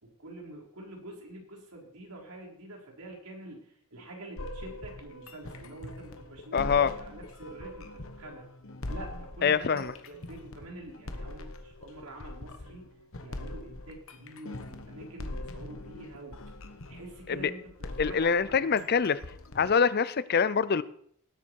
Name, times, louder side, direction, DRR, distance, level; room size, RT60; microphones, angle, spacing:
voice 1, 0.0-8.4 8.9-12.9 13.2-16.4 16.9-17.7 18.0-18.8, right 1 dB, 85° right, -1 dB, 4.1 m, -46 dB
sound 1, 4.4-19.7, left 1 dB, 65° left, 1.2 m, -42 dB
voice 2, 6.5-6.9 9.4-9.9 17.3-17.4 18.0-19.2 19.5-20.8, left 6 dB, 45° left, 16 dB, 0.5 m, -25 dB
18.5 x 8.1 x 4.6 m, 0.65 s
head